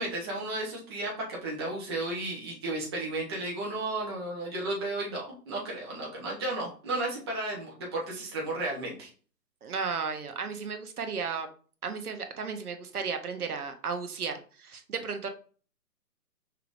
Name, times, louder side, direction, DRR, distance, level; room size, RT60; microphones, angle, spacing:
voice 1, 0.0-9.1, right 2 dB, 15° right, -3 dB, 0.7 m, -33 dB
voice 2, 9.6-11.5 11.8-15.3, right 5 dB, 65° right, 6 dB, 0.9 m, -34 dB
5.7 x 3.4 x 2.5 m, 0.41 s
hypercardioid pair, 150°, 48 cm